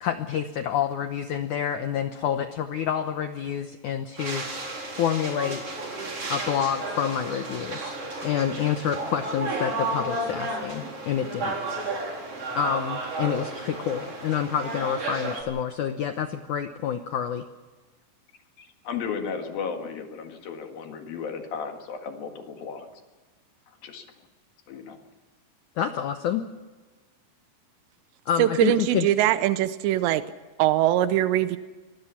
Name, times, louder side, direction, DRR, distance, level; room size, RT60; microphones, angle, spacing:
voice 1, 0.0-4.5 4.9-5.6 6.3-8.0 8.2-11.6 12.6-17.4 25.8-26.4 28.3-29.1, left 9 dB, 85° left, 8 dB, 1.7 m, -28 dB
sound 1, 4.2-15.4, right 2 dB, 35° right, 4.9 m, -32 dB
voice 2, 18.6-22.9 23.8-24.1 24.7-25.0, left 6 dB, 65° left, 4 dB, 3.4 m, -34 dB
voice 3, 28.4-30.2 30.6-31.6, right 13 dB, 90° right, 12 dB, 3.0 m, -22 dB
25.5 x 20.5 x 5.9 m, 1.3 s
omnidirectional pair, 4.9 m